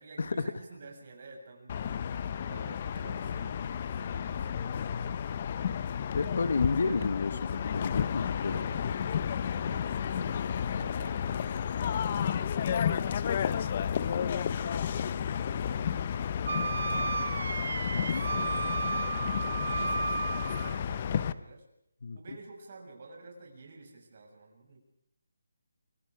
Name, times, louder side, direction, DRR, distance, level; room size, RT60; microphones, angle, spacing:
voice 1, 0.0-5.2 6.8-7.2 8.4-8.9 9.4-12.6 13.0-14.9 15.5-17.6 17.9-18.6 19.0-21.7 22.1-24.8, right 3 dB, 40° right, 1 dB, 6.9 m, -51 dB
sound 1, 1.7-21.3, left 8 dB, 30° left, 0.8 m, -32 dB
voice 2, 6.2-7.3 7.6-8.7 17.9-18.2 22.0-22.2, left 4 dB, 55° left, 13 dB, 1.4 m, -31 dB
Wind instrument woodwind instrument, 16.4-20.8, right 4 dB, 65° right, 1.2 m, -33 dB
28.5 x 24.0 x 4.9 m, 0.78 s
hypercardioid pair, 170°, 0 cm